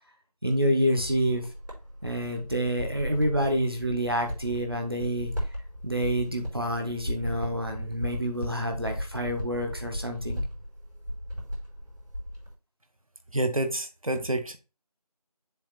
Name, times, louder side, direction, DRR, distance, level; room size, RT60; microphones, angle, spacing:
voice 1, 0.4-1.5 2.0-5.3 5.8-10.4, equal, 35° right, 1.0 m, -28 dB
sound 1, 0.9-12.5, equal, 80° right, 3.8 m, -36 dB
voice 2, 13.3-14.6, right 1 dB, 60° right, 1.0 m, -28 dB
7.1 x 3.0 x 5.7 m
figure-of-eight pair, 170°, 20 cm